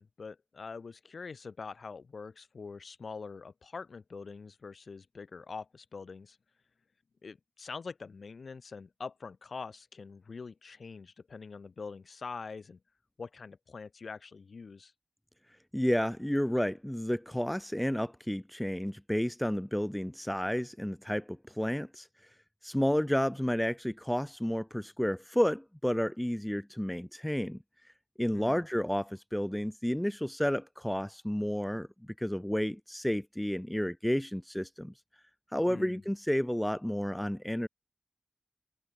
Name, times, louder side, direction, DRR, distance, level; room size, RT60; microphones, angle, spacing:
voice 1, 0.0-6.4 7.2-12.8 13.2-14.9 28.3-28.6 35.7-36.0, left 4 dB, 75° left, 3.7 m, -44 dB
voice 2, 15.7-22.1 22.6-27.6 28.2-34.9 35.5-37.7, equal, 5° left, 2.5 m, -31 dB
wide cardioid pair, 75°, 0 cm